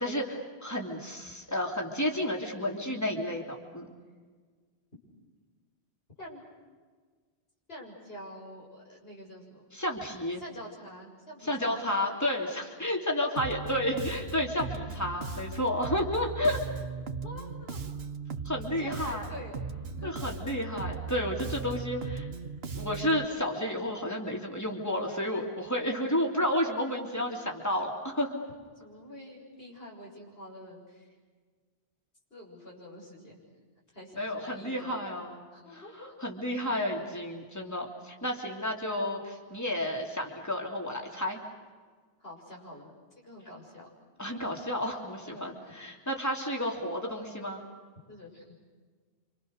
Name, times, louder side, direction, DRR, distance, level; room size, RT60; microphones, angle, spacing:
voice 1, 0.0-3.9 9.7-10.4 11.4-16.6 18.4-19.3 20.0-22.3 22.7-28.3 34.2-35.5 35.7-41.4 44.2-47.6, left 1 dB, 15° left, 0 dB, 3.3 m, -31 dB
voice 2, 7.7-9.6 10.4-11.9 17.2-17.9 18.8-19.6 20.0-20.5 28.8-31.1 32.3-33.4 33.9-35.0 35.5-36.1 42.2-43.9 45.2-45.7 48.1-48.5, left 1 dB, 65° left, -3 dB, 7.3 m, -46 dB
Bass guitar, 13.4-23.2, right 5 dB, 70° right, 1.3 m, -38 dB
29.0 x 26.5 x 6.6 m, 1.5 s
omnidirectional pair, 1.1 m